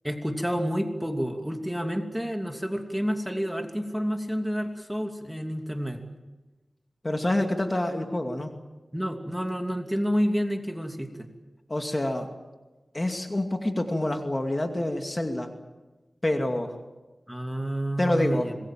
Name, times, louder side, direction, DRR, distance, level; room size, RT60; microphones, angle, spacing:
voice 1, 0.0-6.0 8.9-11.3 17.3-18.5, equal, 5° right, 4 dB, 2.8 m, -29 dB
voice 2, 7.0-8.5 11.7-12.3 12.9-15.5 16.2-16.8 18.0-18.5, left 1 dB, 30° left, 4 dB, 2.5 m, -27 dB
26.0 x 21.0 x 7.6 m, 1.2 s
wide cardioid pair, 55°, 0 cm